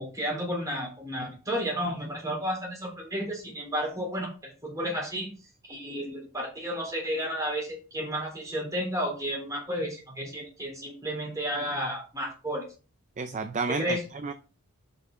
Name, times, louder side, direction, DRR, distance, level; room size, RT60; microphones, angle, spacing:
voice 1, 0.0-5.3 5.7-12.7 13.7-14.0, equal, 15° right, 0 dB, 3.5 m, -32 dB
voice 2, 13.2-14.3, right 4 dB, 35° right, 9 dB, 0.5 m, -31 dB
7.8 x 5.7 x 3.8 m, 0.34 s
head